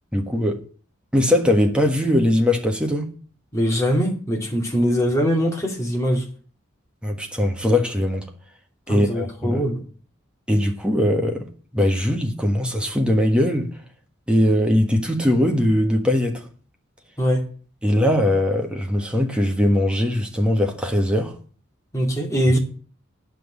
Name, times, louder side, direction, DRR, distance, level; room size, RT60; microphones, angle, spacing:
voice 1, 0.1-0.6 1.1-3.1 7.0-8.2 8.9-9.6 10.5-11.5 11.7-13.7 14.3-16.4 17.8-21.3, left 1 dB, 5° right, 1.4 m, -20 dB
voice 2, 3.5-6.3 8.9-9.8 17.2-17.4 21.9-22.6, equal, 15° left, 2.5 m, -22 dB
9.3 x 6.0 x 8.4 m
head